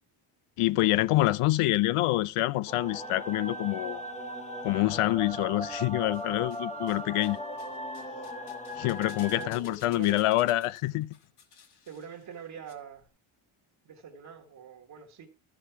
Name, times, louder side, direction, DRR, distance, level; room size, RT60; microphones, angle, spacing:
voice 1, 0.6-4.0 4.6-7.4 8.8-11.1, left 17 dB, 85° left, 0.6 m, -26 dB
sound 1, 2.7-9.5, equal, 15° left, 0.9 m, -38 dB
sound 2, 5.8-6.6 6.9-12.7 13.0-13.1, left 6 dB, 50° left, 1.6 m, -55 dB
voice 2, 9.3-10.3 11.9-13.1 13.8-15.3, right 7 dB, 45° right, 1.4 m, -44 dB
13.5 x 6.3 x 4.5 m
cardioid pair, 175°, 50 cm